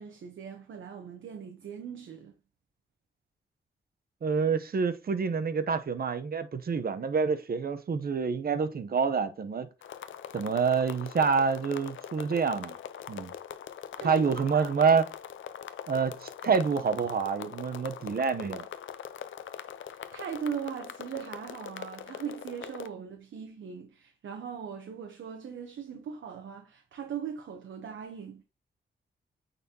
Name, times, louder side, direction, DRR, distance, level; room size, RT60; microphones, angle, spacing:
voice 1, 0.0-2.3 14.0-14.7 19.8-28.4, right 7 dB, 80° right, 0.9 m, -39 dB
voice 2, 4.2-9.7 10.3-12.8 13.1-13.3 14.0-15.1 15.9-18.7, right 5 dB, 50° right, 0.8 m, -27 dB
sound 1, 9.8-22.9, left 9 dB, 80° left, 0.5 m, -42 dB
9.0 x 4.2 x 2.8 m
wide cardioid pair, 100°, 20 cm